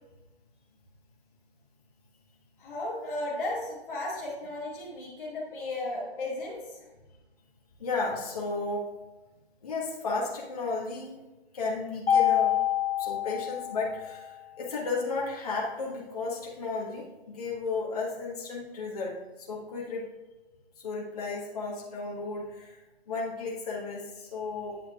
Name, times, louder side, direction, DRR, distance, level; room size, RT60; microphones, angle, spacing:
voice 1, 2.6-6.8, left 2 dB, 10° left, -11 dB, 2.1 m, -35 dB
voice 2, 7.8-8.9 9.6-11.2 11.5-12.6 13.0-20.1 20.8-22.8 23.1-24.8, left 3 dB, 35° left, -3 dB, 1.6 m, -33 dB
Mallet percussion, 12.1-14.3, left 10 dB, 60° left, 1.1 m, -26 dB
9.1 x 7.7 x 2.5 m, 1.1 s
hypercardioid pair, 165°, 32 cm